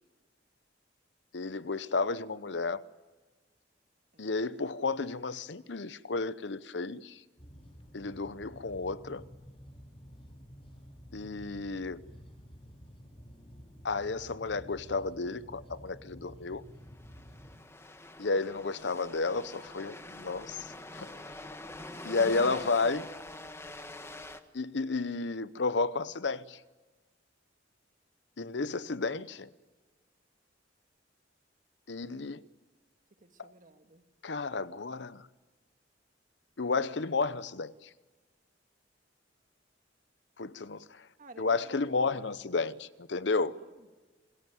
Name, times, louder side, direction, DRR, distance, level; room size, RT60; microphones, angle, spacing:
voice 1, 1.3-2.8 4.2-7.2 7.9-9.2 11.1-12.0 13.8-16.6 18.2-21.1 22.0-23.1 24.5-26.6 28.4-29.5 31.9-32.4 33.4-33.5 34.2-35.3 36.6-37.9 40.4-41.1 41.4-43.5, left 3 dB, 70° left, 0.8 m, -32 dB
voice 2, 4.1-4.7 20.6-21.5 21.9-22.6 33.2-34.1 41.2-42.6 43.3-43.9, right 2 dB, 45° right, 1.9 m, -56 dB
sound 1, 7.4-17.6, equal, 35° left, 3.4 m, -51 dB
sound 2, 16.9-24.4, left 2 dB, 15° left, 1.3 m, -44 dB
28.5 x 21.0 x 9.3 m
head